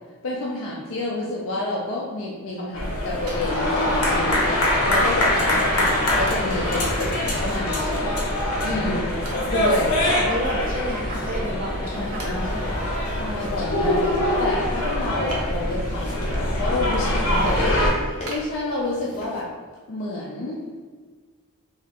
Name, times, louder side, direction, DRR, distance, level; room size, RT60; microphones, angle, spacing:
voice 1, 0.2-8.1 8.6-9.1 9.4-10.0 11.9-12.6 13.1-19.5 19.9-20.6, left 2 dB, 65° left, -4 dB, 0.4 m, -29 dB
sound 1, 2.7-17.9, left 1 dB, 80° left, 0.8 m, -23 dB
Wood, 3.3-4.4 4.9-5.0 6.3-6.7 9.3-10.4 10.7-10.8 11.5-11.6 12.2-12.9 15.3-16.0 16.5-16.9 17.4-17.5 18.3-19.3 19.8-19.9, right 2 dB, 85° right, 0.7 m, -40 dB
voice 2, 10.0-12.8, right 1 dB, 40° right, -1 dB, 0.6 m, -31 dB
sound 2, 11.7-19.4, equal, 25° left, 0.8 m, -43 dB
3.2 x 2.8 x 2.8 m, 1.5 s
head